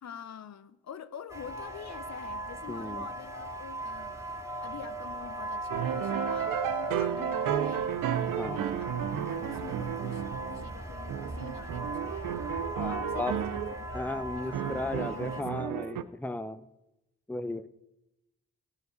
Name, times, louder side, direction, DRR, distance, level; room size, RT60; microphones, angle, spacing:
voice 1, 0.0-12.5 12.8-15.9, left 8 dB, 60° left, 0.7 m, -46 dB
sound 1, 1.3-15.4, right 1 dB, 10° right, 2.1 m, -38 dB
voice 2, 2.7-3.1 8.4-8.6 12.8-13.3 13.9-16.6 17.3-17.7, left 2 dB, 5° left, 0.7 m, -35 dB
sound 2, 5.7-10.8 11.1-13.8 14.5-16.0, right 10 dB, 90° right, 0.6 m, -33 dB
15.0 x 5.3 x 8.0 m
supercardioid pair, 45°, 31 cm